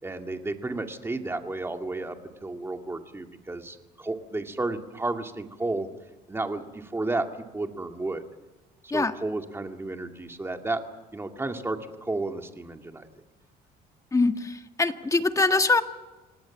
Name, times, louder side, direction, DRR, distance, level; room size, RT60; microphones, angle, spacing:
voice 1, 0.0-5.9 6.3-7.2 7.5-8.2 8.9-10.8 11.1-13.1, right 2 dB, 15° right, 5 dB, 2.3 m, -32 dB
voice 2, 14.1-15.8, left 3 dB, 20° left, 7 dB, 1.6 m, -23 dB
27.5 x 19.0 x 7.3 m, 1.1 s
cardioid pair, 110°, 17 cm